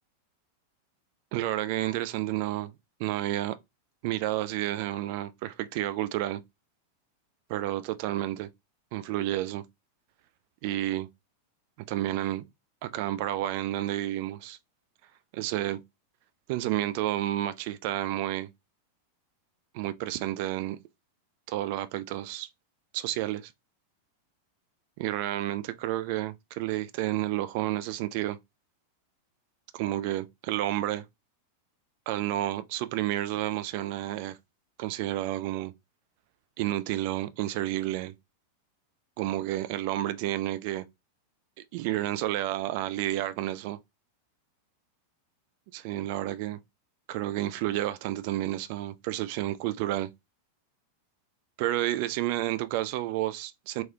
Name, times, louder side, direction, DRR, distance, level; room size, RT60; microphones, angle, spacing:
voice 1, 1.3-2.7 3.0-3.6 4.0-6.4 7.5-8.5 8.9-9.6 10.6-11.1 11.9-12.5 12.8-14.6 15.3-15.8 16.5-18.5 19.7-20.8 21.5-22.5 22.9-23.5 25.0-28.4 29.7-31.0 32.1-34.4 34.8-35.7 36.6-38.1 39.2-40.8 41.7-43.8 45.7-46.6 47.1-50.1 51.6-53.8, right 14 dB, 45° right, 0.3 m, -30 dB
3.1 x 2.9 x 2.2 m
figure-of-eight pair, 90°, 0 cm